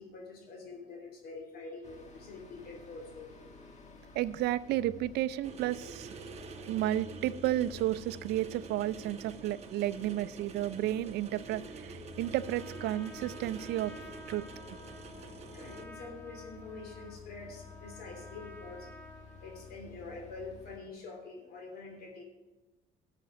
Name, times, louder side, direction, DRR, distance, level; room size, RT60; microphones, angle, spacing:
voice 1, 0.0-3.4 15.5-18.9 19.4-22.2, left 3 dB, 65° left, 2 dB, 3.1 m, -46 dB
sound 1, 1.8-20.8, left 4 dB, 45° left, 1.7 m, -53 dB
voice 2, 4.1-6.1 6.7-13.9 14.3-14.4, right 13 dB, 75° right, 16 dB, 0.5 m, -32 dB
sound 2, 5.4-15.8, right 5 dB, 40° right, 1.1 m, -47 dB
Trumpet, 12.1-19.8, left 1 dB, 10° left, 1.3 m, -52 dB
12.0 x 6.7 x 5.1 m, 1.1 s
cardioid pair, 110°, 17 cm